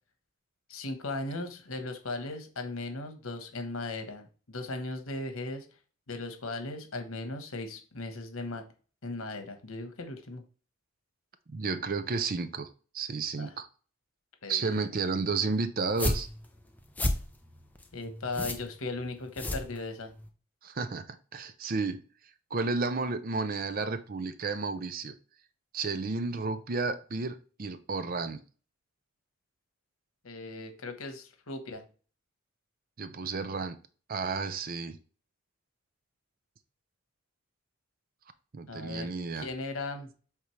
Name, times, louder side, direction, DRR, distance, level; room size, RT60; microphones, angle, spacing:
voice 1, 0.7-5.7 6.1-8.6 9.0-10.4 13.4-13.5 14.4-14.9 17.9-20.1 30.2-31.8 38.7-39.1 39.4-40.1, left 2 dB, 90° left, 6 dB, 1.2 m, -37 dB
voice 2, 11.5-12.7 12.9-13.7 14.5-16.3 20.6-22.0 22.5-25.2 25.7-28.4 33.0-33.8 34.1-35.0 38.5-39.5, right 4 dB, 45° right, 12 dB, 0.5 m, -32 dB
sound 1, 15.8-20.3, left 1 dB, 10° left, 0.6 m, -33 dB
8.1 x 3.7 x 3.2 m, 0.38 s
head